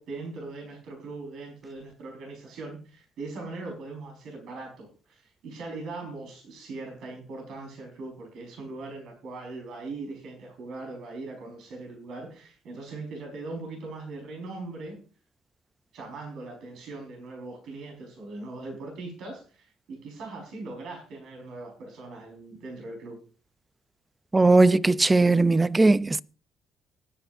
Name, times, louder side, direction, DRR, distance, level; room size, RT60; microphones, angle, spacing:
voice 1, 0.0-15.0 15.9-23.2, right 3 dB, 75° right, 4.8 m, -40 dB
voice 2, 24.3-26.2, right 3 dB, 20° right, 0.5 m, -19 dB
19.5 x 9.9 x 2.6 m
cardioid pair, 75°, 0 cm